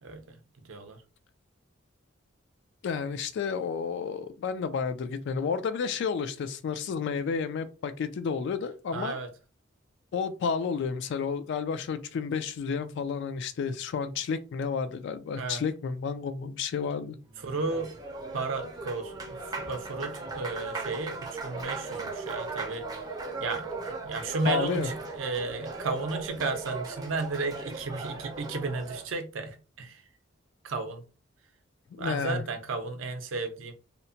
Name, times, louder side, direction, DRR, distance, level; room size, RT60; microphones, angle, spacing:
voice 1, 0.0-1.0 8.9-9.3 15.3-15.6 17.4-18.0 18.3-23.1 23.4-30.0 30.6-31.0 32.0-33.7, right 3 dB, 75° right, 0.5 m, -34 dB
voice 2, 2.8-9.2 10.1-17.2 24.5-24.9 31.9-32.4, left 6 dB, 60° left, 0.3 m, -31 dB
Applause, 17.3-29.1, right 3 dB, 20° right, 0.5 m, -38 dB
2.8 x 2.1 x 2.7 m
head